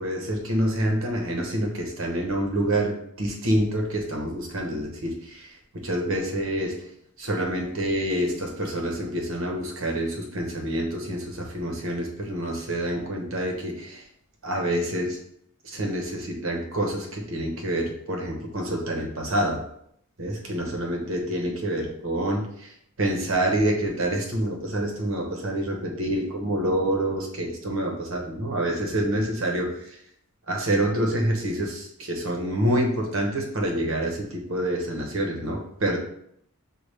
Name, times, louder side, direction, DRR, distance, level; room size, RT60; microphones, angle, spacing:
voice 1, 0.0-6.9 7.2-14.1 14.4-15.2 15.6-19.7 20.2-30.0 30.5-36.0, right 1 dB, 65° right, 2 dB, 0.9 m, -27 dB
6.3 x 2.4 x 3.3 m, 0.69 s
head